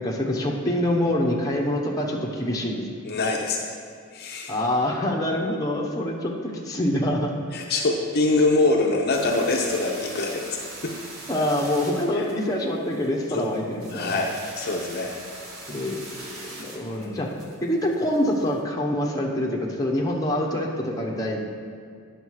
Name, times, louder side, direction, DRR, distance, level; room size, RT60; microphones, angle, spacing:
voice 1, 0.0-2.8 4.5-6.3 6.6-7.3 11.3-14.2 15.7-17.3 17.6-21.4, left 1 dB, 15° left, -2 dB, 1.0 m, -25 dB
voice 2, 3.0-3.7 4.1-4.6 7.5-11.0 12.1-12.2 13.3-13.5 13.9-15.2 17.0-17.3, left 2 dB, 45° left, 0 dB, 0.7 m, -24 dB
sound 1, 9.1-18.5, right 1 dB, 75° right, 1.7 m, -41 dB
9.0 x 6.6 x 4.7 m, 2.2 s
head